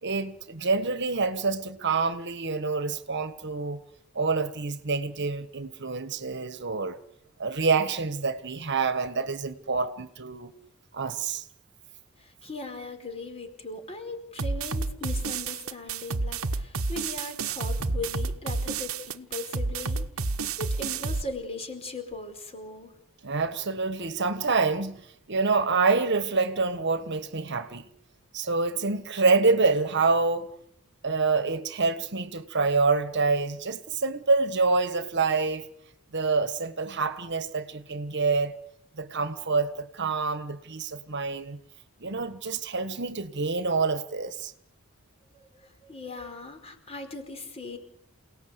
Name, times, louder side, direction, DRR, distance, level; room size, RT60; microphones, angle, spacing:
voice 1, 0.0-3.8 4.1-7.0 7.4-10.5 10.9-11.4 23.2-27.8 28.3-30.5 31.0-35.7 36.1-38.5 39.0-41.6 42.0-44.5, right 4 dB, 55° right, 1.5 m, -27 dB
voice 2, 12.2-20.0 20.6-22.9 45.6-47.8, left 3 dB, 30° left, 4.7 m, -38 dB
sound 1, 14.4-21.2, right 3 dB, 75° right, 1.2 m, -30 dB
28.5 x 18.5 x 8.2 m
head